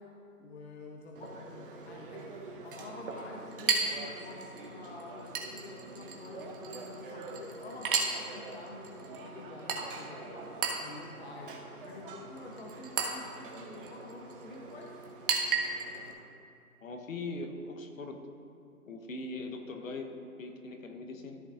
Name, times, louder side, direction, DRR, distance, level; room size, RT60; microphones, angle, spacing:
voice 1, 0.0-15.0, left 3 dB, 45° left, 0 dB, 0.7 m, -48 dB
Chink clink, 1.1-16.1, right 5 dB, 35° right, 0.9 m, -37 dB
voice 2, 16.8-18.2 18.9-21.4, left 2 dB, 60° left, 4 dB, 1.0 m, -41 dB
13.5 x 6.1 x 2.5 m, 2.6 s
figure-of-eight pair, 140°, 45 cm